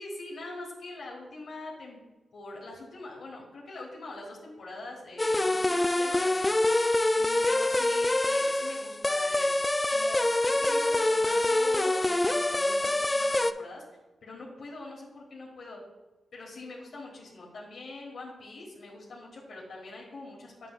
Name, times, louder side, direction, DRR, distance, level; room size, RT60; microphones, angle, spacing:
voice 1, 0.0-2.0 2.3-6.6 7.1-9.5 9.9-13.8 14.2-15.8 16.3-20.7, left 2 dB, 70° left, -2 dB, 1.5 m, -43 dB
sound 1, 5.2-13.5, left 2 dB, 20° left, 0.3 m, -25 dB
7.8 x 6.9 x 2.4 m, 1.1 s
cardioid pair, 75°, 0 cm